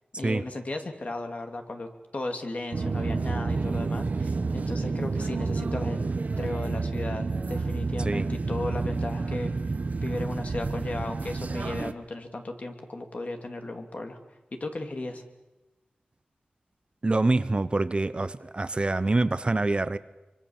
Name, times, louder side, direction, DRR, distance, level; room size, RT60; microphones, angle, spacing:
voice 1, 0.1-6.0 6.4-9.5 10.0-14.2 14.5-15.2, left 2 dB, 50° left, 5 dB, 2.7 m, -35 dB
sound 1, 2.7-11.9, right 3 dB, 55° right, 1.1 m, -29 dB
voice 2, 17.0-20.0, right 2 dB, 35° right, 13 dB, 0.8 m, -25 dB
25.0 x 25.0 x 7.2 m, 1.0 s
wide cardioid pair, 90°, 3 cm